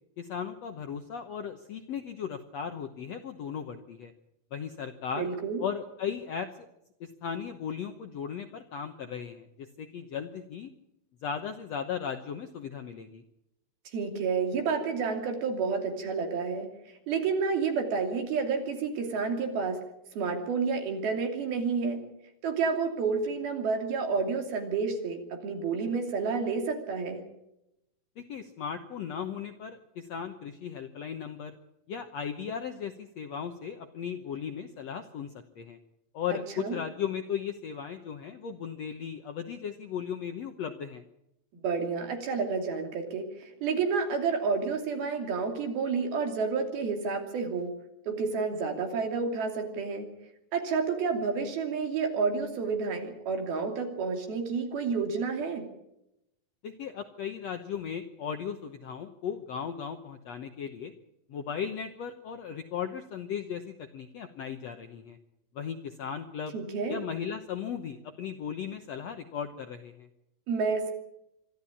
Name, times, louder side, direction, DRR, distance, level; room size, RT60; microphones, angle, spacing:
voice 1, 0.2-4.1 4.5-5.3 5.6-6.7 7.0-10.7 11.2-13.2 28.2-31.5 31.9-35.8 36.1-41.0 56.6-60.9 61.3-65.2 65.5-66.5 66.9-70.1, left 7 dB, 70° left, 6 dB, 1.6 m, -36 dB
voice 2, 5.2-5.6 13.9-16.7 17.1-19.8 20.2-22.0 22.4-27.2 36.6-36.8 41.6-47.7 48.1-50.1 50.5-55.7 66.5-67.0 70.5-70.9, right 5 dB, 75° right, 4 dB, 4.7 m, -30 dB
25.0 x 12.5 x 8.6 m, 0.84 s
omnidirectional pair, 4.4 m